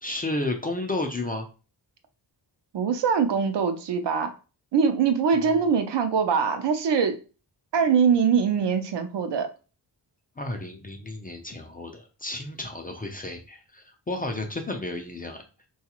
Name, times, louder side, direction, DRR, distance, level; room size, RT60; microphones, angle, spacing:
voice 1, 0.0-1.5 5.4-5.7 10.4-15.4, left 2 dB, 20° left, 3 dB, 0.4 m, -32 dB
voice 2, 2.7-4.3 4.7-7.2 7.7-9.5, right 6 dB, 70° right, 7 dB, 0.6 m, -23 dB
3.8 x 2.4 x 2.9 m, 0.34 s
wide cardioid pair, 130°, 44 cm